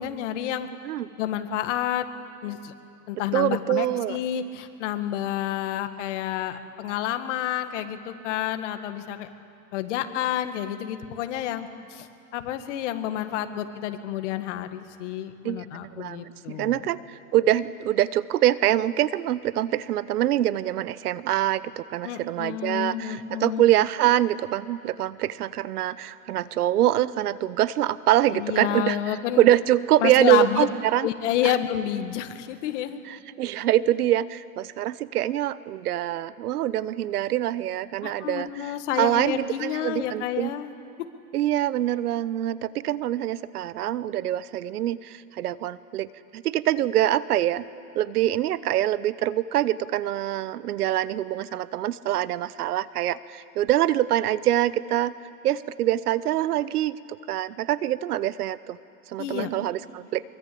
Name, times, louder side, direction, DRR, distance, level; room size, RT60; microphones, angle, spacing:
voice 1, 0.0-0.7 1.2-2.1 2.4-2.7 3.1-9.3 9.7-16.9 22.0-23.7 28.3-29.4 30.0-30.7 31.0-33.0 38.0-40.7 59.2-59.5, left 11 dB, 50° left, 8 dB, 1.8 m, -29 dB
voice 2, 3.3-4.2 15.4-15.7 16.0-29.0 29.4-31.1 33.1-38.7 39.0-40.5 41.3-47.7 47.9-55.1 55.4-57.0 57.3-58.8 59.1-60.2, right 13 dB, 80° right, 17 dB, 1.0 m, -24 dB
23.5 x 23.5 x 8.6 m, 2.5 s
supercardioid pair, 155°, 44 cm